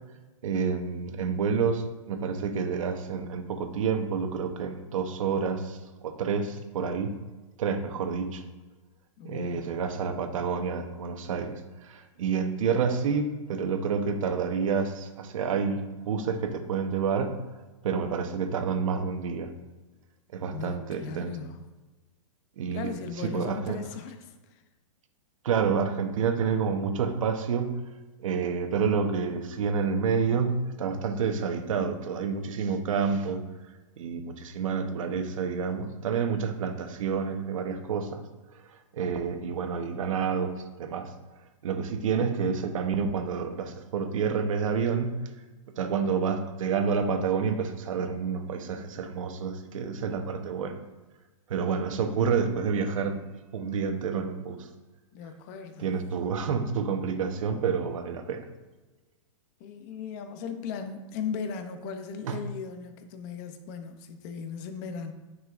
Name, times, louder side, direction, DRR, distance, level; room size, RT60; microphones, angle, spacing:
voice 1, 0.4-7.1 7.6-8.4 9.2-11.5 11.8-17.4 17.8-19.5 20.3-21.4 22.6-22.9 23.2-23.8 25.4-27.8 28.2-33.4 34.0-38.2 38.5-41.1 41.6-45.2 45.8-50.8 51.5-53.2 53.5-54.7 55.8-58.5 62.2-62.4, right 6 dB, 70° right, 6 dB, 1.0 m, -29 dB
voice 2, 9.2-9.8 20.5-21.6 22.7-24.6 55.1-55.9 59.6-65.1, left 6 dB, 30° left, 8 dB, 0.6 m, -37 dB
9.4 x 5.5 x 2.5 m, 1.2 s
hypercardioid pair, 165°, 18 cm